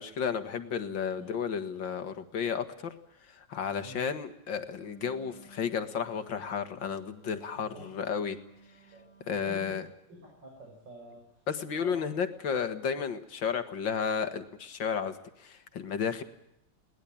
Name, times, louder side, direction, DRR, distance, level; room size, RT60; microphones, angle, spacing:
voice 1, 0.0-2.9 3.2-8.4 9.3-9.8 11.5-16.2, left 6 dB, 85° left, 9 dB, 2.4 m, -33 dB
Wind instrument woodwind instrument, 4.7-9.5, equal, 20° left, 6.3 m, -56 dB
voice 2, 8.9-9.8 10.1-11.2 11.7-12.0, right 1 dB, 70° right, 0 dB, 6.4 m, -47 dB
22.0 x 19.0 x 8.7 m, 0.80 s
omnidirectional pair, 2.0 m